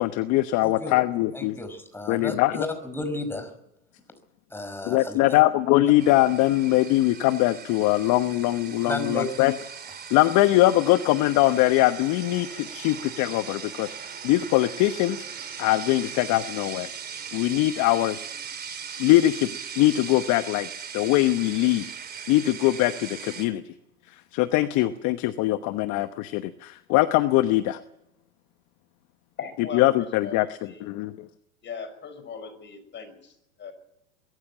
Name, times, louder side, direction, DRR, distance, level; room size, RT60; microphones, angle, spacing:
voice 1, 0.0-1.6 2.1-2.6 4.9-9.5 10.1-14.0 14.2-15.3 15.6-16.9 17.3-18.2 19.0-19.5 19.8-20.7 20.9-21.8 22.3-23.6 24.3-27.8 29.7-30.5 30.8-31.3, left 16 dB, 45° left, 11 dB, 1.1 m, -22 dB
voice 2, 0.6-0.9 1.3-3.5 4.5-5.2 8.8-9.3, left 2 dB, 5° left, 8 dB, 5.1 m, -32 dB
sound 1, 6.0-23.5, right 7 dB, 25° right, 3.6 m, -39 dB
voice 3, 29.4-30.9 31.6-33.7, left 6 dB, 25° left, 10 dB, 5.7 m, -39 dB
22.0 x 14.5 x 8.9 m, 0.86 s
hypercardioid pair, 110°, 42 cm